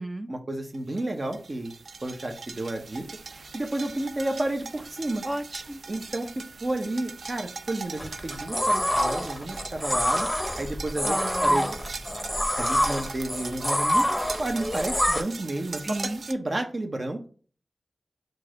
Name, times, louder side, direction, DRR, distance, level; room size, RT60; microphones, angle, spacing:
voice 1, 0.3-1.7 2.0-3.1 3.5-5.2 5.9-6.3 6.6-10.3 10.6-11.7 12.6-14.1 14.4-17.2, right 1 dB, 55° right, 3 dB, 1.0 m, -31 dB
sound 1, 0.7-16.3, right 4 dB, 85° right, 0.3 m, -41 dB
voice 2, 5.2-5.8 11.0-11.7 15.8-16.2, right 1 dB, 30° right, 9 dB, 0.5 m, -33 dB
sound 2, 8.0-15.2, equal, 10° left, 0.7 m, -26 dB
4.6 x 2.6 x 4.4 m, 0.41 s
cardioid pair, 40°, 0 cm